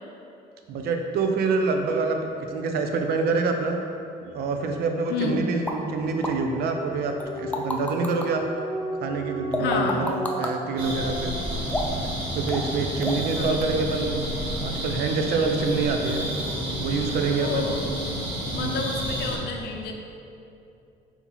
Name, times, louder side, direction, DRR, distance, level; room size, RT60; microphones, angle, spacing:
voice 1, 0.7-3.8 4.2-8.4 9.0-11.3 12.3-14.3 14.5-16.2 16.8-17.7 18.5-18.9, right 4 dB, 70° right, 4 dB, 0.5 m, -26 dB
voice 2, 5.1-5.4 9.6-10.1 13.2-13.6 17.4-17.9 18.5-19.9, left 4 dB, 75° left, 2 dB, 0.6 m, -30 dB
sound 1, 5.7-5.8 6.2-6.3 7.2-8.3 9.5-10.5 11.7-12.1 12.5-12.7 13.0-13.3 13.6-13.7, left 1 dB, 10° left, 0.4 m, -29 dB
sound 2, 7.2-12.5, equal, 35° right, 1.5 m, -34 dB
sound 3, 10.8-19.4, equal, 85° right, 1.4 m, -30 dB
4.2 x 2.8 x 4.1 m, 2.7 s
cardioid pair, 110°, 17 cm